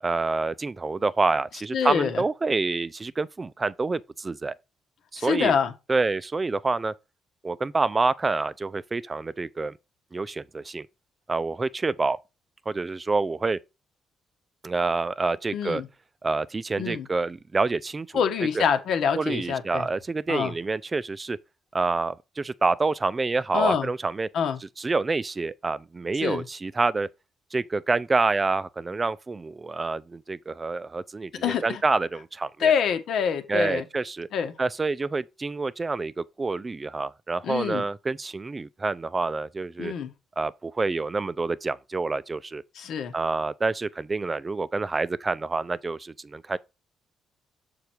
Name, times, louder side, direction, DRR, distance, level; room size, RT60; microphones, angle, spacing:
voice 1, 0.0-4.5 5.1-5.6 5.9-6.9 7.4-9.7 10.1-10.9 11.3-12.2 12.7-13.6 14.6-15.8 16.2-18.1 18.6-18.7 19.1-21.4 21.7-24.3 24.8-27.1 27.5-32.7 33.5-34.3 34.6-39.9 40.4-42.6 43.1-46.6, right 3 dB, 25° right, 0.5 m, -27 dB
voice 2, 1.7-2.2 5.2-5.7 15.5-15.9 16.8-17.1 18.1-19.9 20.3-20.5 23.5-23.9 24.3-24.6 26.2-26.4 31.4-31.8 32.6-33.9 34.3-34.5 37.4-37.8 39.8-40.1 42.7-43.1, left 7 dB, 70° left, 1.2 m, -26 dB
6.8 x 4.7 x 4.5 m
cardioid pair, 90°, 0 cm